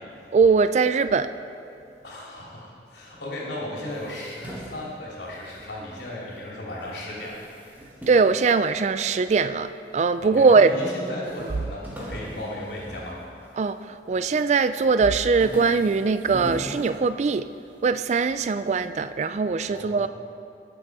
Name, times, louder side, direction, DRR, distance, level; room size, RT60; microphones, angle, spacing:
voice 1, 0.3-1.3 8.1-10.8 13.6-17.5 17.8-20.1, right 4 dB, 40° right, 12 dB, 0.3 m, -21 dB
voice 2, 2.0-7.4 10.2-13.1 19.7-20.1, left 1 dB, 80° left, -4 dB, 3.0 m, -35 dB
sound 1, 3.8-6.5 6.8-9.3 9.9-10.6 10.9-11.0 11.2-13.8 14.2-14.6 15.0-17.6, right 1 dB, 10° right, 1.8 m, -41 dB
20.0 x 6.9 x 4.8 m, 2.5 s
head